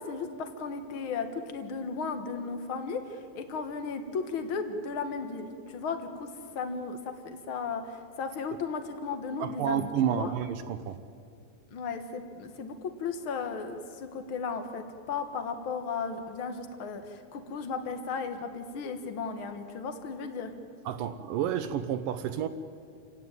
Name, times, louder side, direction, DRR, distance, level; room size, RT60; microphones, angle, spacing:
voice 1, 0.0-10.3 11.7-20.5, left 5 dB, 65° left, 7 dB, 1.2 m, -35 dB
voice 2, 9.4-11.0 20.9-22.5, right 9 dB, 75° right, 10 dB, 2.1 m, -30 dB
29.0 x 16.5 x 9.1 m, 2.3 s
omnidirectional pair, 4.5 m